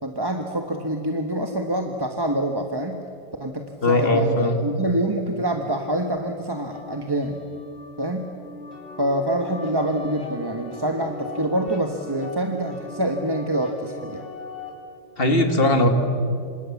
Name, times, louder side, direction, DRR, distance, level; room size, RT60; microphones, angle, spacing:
voice 1, 0.0-3.0 3.4-7.4 8.0-8.3 9.0-14.3, right 1 dB, 15° right, 3 dB, 1.3 m, -26 dB
voice 2, 3.8-4.6 15.2-15.9, left 1 dB, 30° left, 6 dB, 2.4 m, -19 dB
sound 1, 6.7-14.7, left 2 dB, 75° left, 5.2 m, -40 dB
29.0 x 26.0 x 7.3 m, 2.5 s
omnidirectional pair, 1.9 m